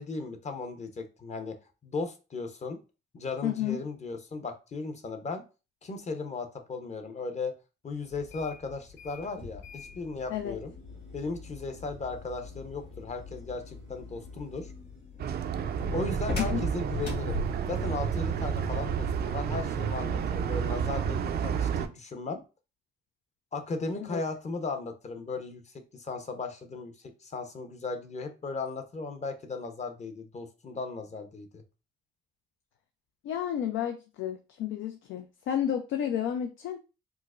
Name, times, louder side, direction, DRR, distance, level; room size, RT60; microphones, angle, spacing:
voice 1, 0.0-1.6 1.8-2.8 3.1-5.4 5.8-7.5 7.8-10.7 11.1-14.7 15.9-17.4 17.7-22.4 23.5-26.9 27.2-31.6, left 3 dB, 35° left, 6 dB, 0.7 m, -36 dB
voice 2, 3.4-3.8 10.3-10.6 16.5-16.6 24.0-24.2 33.2-36.8, left 9 dB, 80° left, 6 dB, 0.4 m, -31 dB
sound 1, 8.1-18.0, left 3 dB, 55° left, 1.8 m, -41 dB
sound 2, 15.2-21.9, right 7 dB, 55° right, 0.4 m, -30 dB
4.5 x 2.0 x 2.4 m, 0.31 s
cardioid pair, 90°, 20 cm